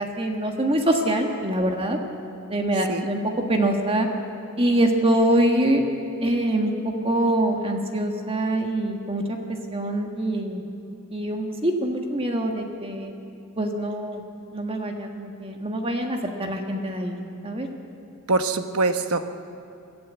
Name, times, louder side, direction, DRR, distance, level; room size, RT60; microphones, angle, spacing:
voice 1, 0.0-2.0 2.5-3.2 3.5-4.1 4.6-5.8 6.2-6.7 7.0-9.4 9.7-10.6 11.1-13.1 13.6-14.2 14.5-17.2 17.4-17.7, right 1 dB, 25° right, 3 dB, 1.6 m, -24 dB
voice 2, 18.3-19.3, right 3 dB, 75° right, 8 dB, 1.2 m, -23 dB
23.0 x 14.0 x 8.1 m, 2.8 s
head